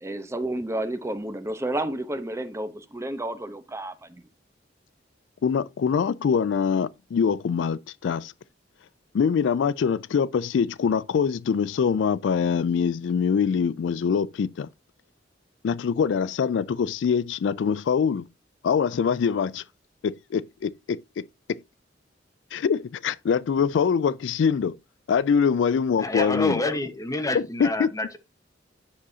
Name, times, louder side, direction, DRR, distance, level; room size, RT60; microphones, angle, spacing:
voice 1, 0.0-4.2, right 1 dB, 15° right, 0.8 m, -31 dB
voice 2, 5.4-8.3 9.1-14.7 15.6-18.2 18.6-19.6 20.0-21.0 22.5-24.7 25.1-26.6 27.3-27.9, left 6 dB, 75° left, 0.3 m, -24 dB
voice 3, 26.0-28.2, left 2 dB, 20° left, 1.1 m, -28 dB
9.9 x 6.2 x 2.7 m
head